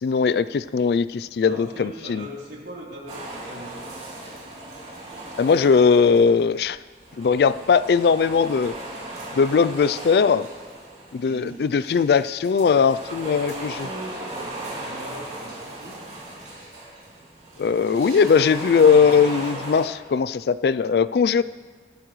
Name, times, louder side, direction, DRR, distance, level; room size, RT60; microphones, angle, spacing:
voice 1, 0.0-2.3 5.4-6.8 7.2-8.8 9.3-10.5 11.1-13.7 17.6-21.4, left 6 dB, 60° left, 15 dB, 0.3 m, -19 dB
voice 2, 1.4-3.8 11.2-12.2 13.1-16.0, equal, 75° right, -4 dB, 3.5 m, -40 dB
sound 1, 3.1-6.4 6.6-19.9, right 2 dB, 35° right, 3.2 m, -37 dB
17.5 x 12.5 x 3.2 m, 1.5 s
head